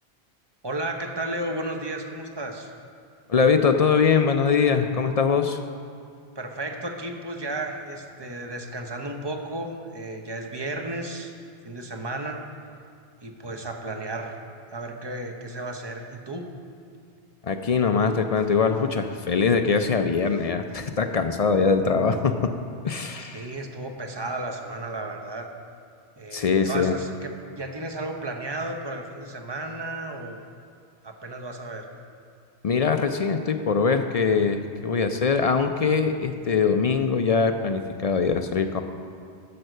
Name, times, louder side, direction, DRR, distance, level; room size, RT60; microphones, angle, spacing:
voice 1, 0.6-2.7 6.3-11.3 11.6-12.4 13.2-14.3 14.7-16.5 23.3-25.5 26.2-30.4 31.0-31.9, right 2 dB, 25° right, 3 dB, 0.9 m, -33 dB
voice 2, 3.3-5.6 17.4-22.5 22.8-23.5 26.3-26.9 32.6-38.8, left 5 dB, 50° left, 7 dB, 0.4 m, -22 dB
11.0 x 7.8 x 6.6 m, 2.3 s
omnidirectional pair, 1.1 m